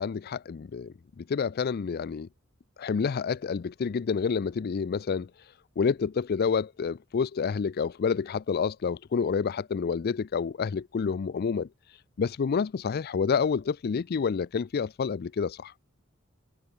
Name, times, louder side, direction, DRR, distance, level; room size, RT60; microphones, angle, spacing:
voice 1, 0.0-2.3 2.8-5.3 5.8-11.7 12.2-15.7, left 6 dB, 50° left, 0.4 m, -28 dB
head